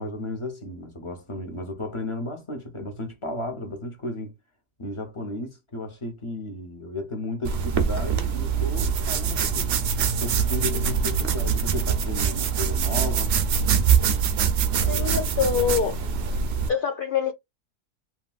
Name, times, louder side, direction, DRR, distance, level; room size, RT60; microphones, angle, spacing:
voice 1, 0.0-4.3 4.8-9.7 10.2-13.3 14.8-15.6, left 1 dB, 25° left, 0.7 m, -34 dB
sound 1, 7.5-16.7, right 6 dB, 60° right, 0.7 m, -24 dB
voice 2, 14.8-16.0 16.7-17.3, left 7 dB, 85° left, 0.4 m, -25 dB
3.0 x 2.9 x 2.4 m
omnidirectional pair, 1.5 m